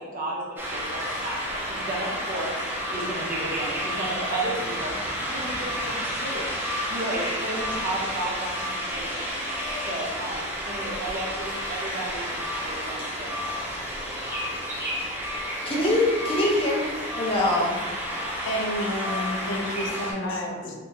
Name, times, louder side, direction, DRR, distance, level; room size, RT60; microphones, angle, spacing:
voice 1, 0.0-2.5 2.9-6.5 6.9-9.3 9.6-13.3, right 1 dB, 45° right, -4 dB, 0.8 m, -33 dB
sound 1, 0.6-20.1, equal, 10° right, 0.6 m, -31 dB
voice 2, 15.7-16.8 17.2-17.7 20.2-20.7, left 1 dB, 30° left, -4 dB, 0.7 m, -24 dB
voice 3, 18.4-20.5, equal, 65° left, 2 dB, 0.4 m, -30 dB
3.6 x 2.1 x 2.9 m, 1.3 s
head